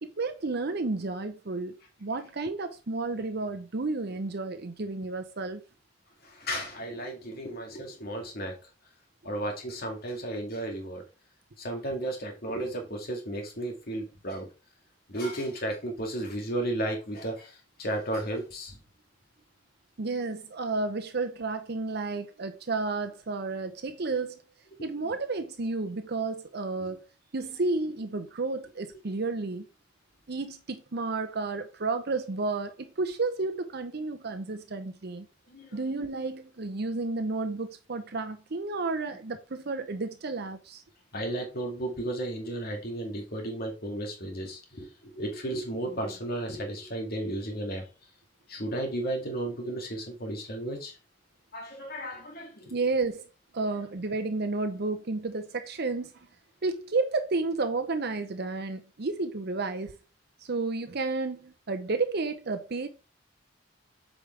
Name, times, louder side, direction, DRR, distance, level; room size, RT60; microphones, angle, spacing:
voice 1, 0.0-5.6 20.0-24.4 24.8-27.0 27.3-29.6 30.3-35.3 35.7-40.8 52.7-53.3 53.5-56.3 56.6-59.9 60.4-62.9, right 3 dB, 55° right, 0.8 m, -31 dB
voice 2, 6.2-8.5 9.2-11.0 11.6-14.5 15.1-18.8 25.0-25.1 26.8-27.0 35.5-35.8 41.1-47.8 48.5-51.0 51.5-52.7, right 1 dB, 55° left, 2.1 m, -34 dB
8.5 x 5.1 x 3.3 m
head